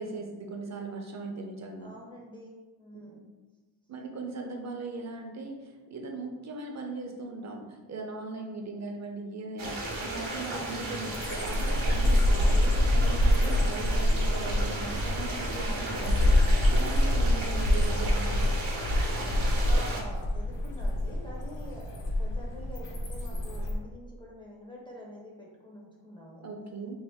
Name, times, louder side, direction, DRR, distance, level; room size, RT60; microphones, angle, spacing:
voice 1, 0.0-1.9 2.9-3.2 3.9-16.3 16.7-18.6 26.4-27.0, right 3 dB, 35° right, 1 dB, 0.5 m, -39 dB
voice 2, 1.8-3.3 15.5-16.7 19.6-26.5, left 1 dB, 10° left, -4 dB, 0.5 m, -46 dB
sound 1, 9.6-20.0, right 1 dB, 75° right, 0.8 m, -35 dB
sound 2, 11.1-23.7, left 1 dB, 65° left, 0.7 m, -26 dB
2.7 x 2.5 x 3.4 m, 1.2 s
wide cardioid pair, 115°, 47 cm